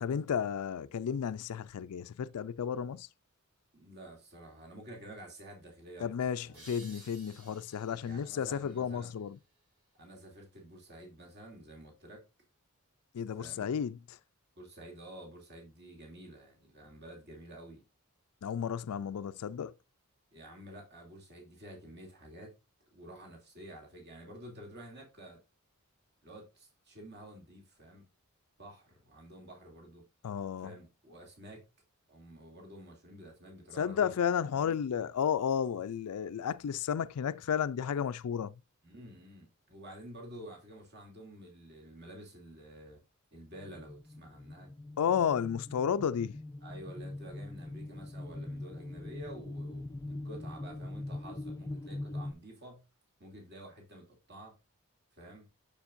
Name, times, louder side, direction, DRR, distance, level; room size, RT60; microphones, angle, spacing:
voice 1, 0.0-3.1 6.0-9.4 13.1-14.2 18.4-19.7 30.2-30.7 33.8-38.6 45.0-46.4, left 7 dB, 85° left, 0.4 m, -32 dB
voice 2, 3.7-6.7 8.0-9.2 9.9-12.3 13.4-13.7 14.6-17.8 20.3-22.5 22.9-25.4 26.2-28.1 28.6-30.1 30.6-31.7 32.1-34.2 34.6-34.8 38.8-43.0 43.3-44.7 46.6-52.8 53.2-54.6 55.1-55.5, right 1 dB, 50° right, 2.7 m, -50 dB
sound 1, 6.5-9.9, right 2 dB, 90° right, 4.8 m, -57 dB
sound 2, 43.5-52.3, left 2 dB, 15° left, 0.4 m, -42 dB
7.1 x 6.9 x 2.5 m
head